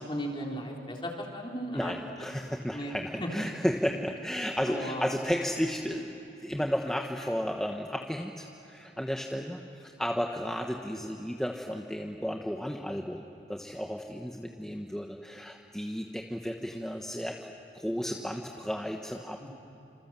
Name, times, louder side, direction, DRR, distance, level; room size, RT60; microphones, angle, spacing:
voice 1, 0.0-2.0 2.7-2.9 3.2-3.3 4.7-5.0 19.4-19.5, equal, 30° left, 0 dB, 3.8 m, -36 dB
voice 2, 1.7-19.5, equal, 5° left, 1 dB, 1.1 m, -33 dB
27.5 x 27.0 x 7.5 m, 3.0 s
head